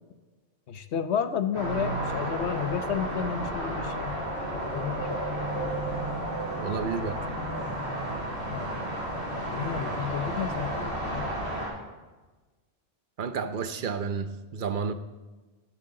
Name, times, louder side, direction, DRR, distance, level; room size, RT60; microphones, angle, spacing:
voice 1, 0.7-4.2 4.5-5.2 8.5-9.0 9.3-11.4, left 7 dB, 85° left, 11 dB, 1.1 m, -32 dB
sound 1, 1.5-11.7, right 1 dB, 80° right, 5.6 m, -32 dB
voice 2, 6.6-7.2 13.2-14.9, right 5 dB, 55° right, 11 dB, 0.9 m, -31 dB
15.0 x 11.5 x 3.8 m, 1.2 s
omnidirectional pair, 1.1 m